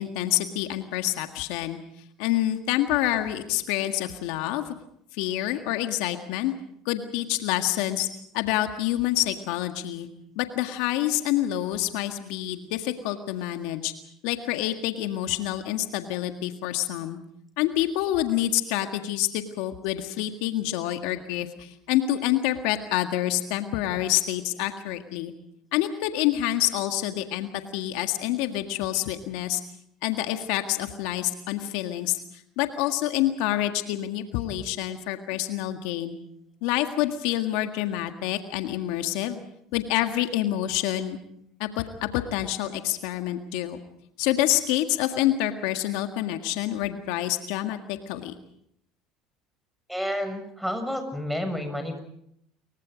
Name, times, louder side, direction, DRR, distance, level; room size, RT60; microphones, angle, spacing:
voice 1, 0.0-1.8 2.2-4.7 5.1-6.5 6.8-8.1 8.3-10.1 10.3-13.9 14.2-17.2 17.6-25.3 25.7-29.6 30.0-36.2 36.6-39.4 39.7-41.2 41.6-43.8 44.2-48.3, left 13 dB, 75° left, 7 dB, 1.7 m, -27 dB
voice 2, 49.9-52.0, equal, ahead, 8 dB, 6.5 m, -30 dB
28.0 x 23.5 x 5.1 m, 0.71 s
supercardioid pair, 85°, 0 cm